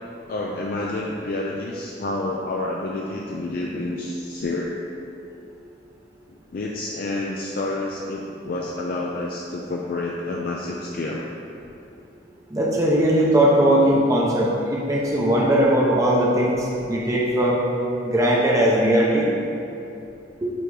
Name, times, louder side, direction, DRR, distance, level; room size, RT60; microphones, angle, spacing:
voice 1, 0.3-4.7 6.5-11.2, left 2 dB, 55° left, -2 dB, 0.4 m, -29 dB
voice 2, 12.5-17.6 18.0-19.3 20.4-20.5, right 1 dB, 20° right, -4 dB, 0.6 m, -19 dB
6.9 x 3.0 x 4.7 m, 2.7 s
head